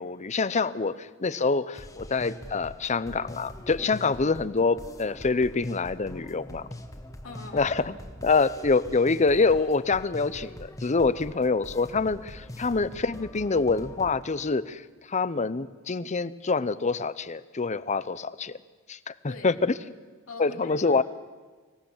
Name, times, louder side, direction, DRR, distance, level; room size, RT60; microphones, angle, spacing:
voice 1, 0.0-6.6 7.5-7.9 8.2-14.8 15.1-18.6 18.9-19.7 20.4-21.0, left 4 dB, 35° left, 16 dB, 0.7 m, -26 dB
sound 1, 1.7-14.2, left 1 dB, 15° left, 1.4 m, -43 dB
voice 2, 7.2-7.7 19.3-19.6 20.3-21.0, left 3 dB, 85° left, 0 dB, 2.7 m, -42 dB
24.5 x 17.0 x 7.3 m, 1.4 s
head